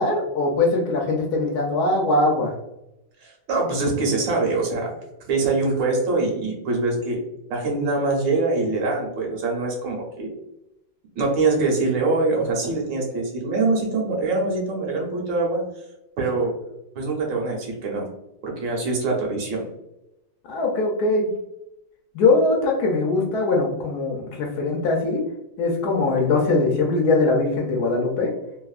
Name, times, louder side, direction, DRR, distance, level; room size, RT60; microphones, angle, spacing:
voice 1, 0.0-2.5 20.5-21.3 22.1-25.2 25.6-28.3, left 3 dB, 70° left, 0 dB, 1.0 m, -21 dB
voice 2, 3.2-4.9 5.3-7.2 7.5-10.3 11.1-15.6 16.2-16.5 16.9-18.0 18.4-19.7, right 3 dB, 75° right, -1 dB, 1.5 m, -24 dB
3.4 x 2.2 x 2.3 m, 0.88 s
omnidirectional pair, 2.0 m